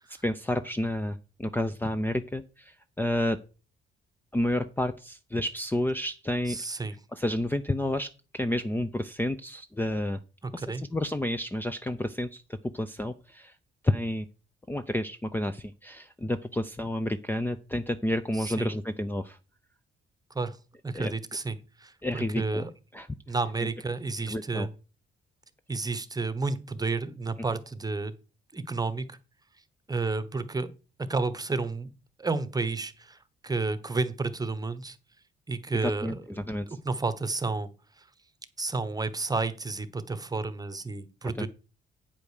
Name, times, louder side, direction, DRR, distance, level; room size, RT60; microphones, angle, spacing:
voice 1, 0.2-3.4 4.3-6.6 7.1-10.2 10.5-10.7 10.9-13.5 13.8-14.2 14.7-19.4 20.9-21.1 22.0-22.7 22.9-23.1 24.3-24.7 35.8-36.7 41.4-41.5, left 1 dB, 10° left, 9 dB, 0.6 m, -30 dB
voice 2, 6.5-7.0 10.4-10.8 18.4-18.7 20.3-20.6 20.8-22.7 23.3-24.7 25.7-28.1 28.5-29.2 29.9-30.7 31.1-31.9 32.2-35.0 35.5-36.2 36.7-37.7 38.0-38.1 38.6-41.5, right 3 dB, 20° right, 13 dB, 1.0 m, -31 dB
8.8 x 5.2 x 6.5 m, 0.33 s
cardioid pair, 90°, 20 cm